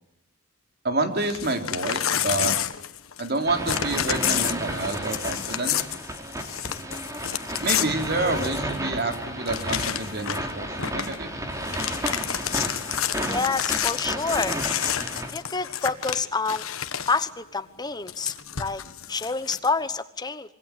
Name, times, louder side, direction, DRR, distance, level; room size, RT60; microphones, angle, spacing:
voice 1, 0.8-2.6 3.2-5.9 7.6-11.5, right 2 dB, 50° right, 5 dB, 3.6 m, -28 dB
Crumpling crinkling / Tearing, 1.2-3.4 3.6-8.8 9.1-9.2 9.5-10.5 10.8-11.2 11.5-17.3 18.1-19.7, left 10 dB, 90° left, 1.4 m, -29 dB
sound 1, 3.5-15.3, right 1 dB, 15° right, 3.3 m, -32 dB
voice 2, 13.3-14.6 15.3-16.6 17.1-18.8 19.1-20.5, left 4 dB, 20° left, 12 dB, 1.1 m, -28 dB
26.0 x 22.5 x 8.5 m, 0.82 s
head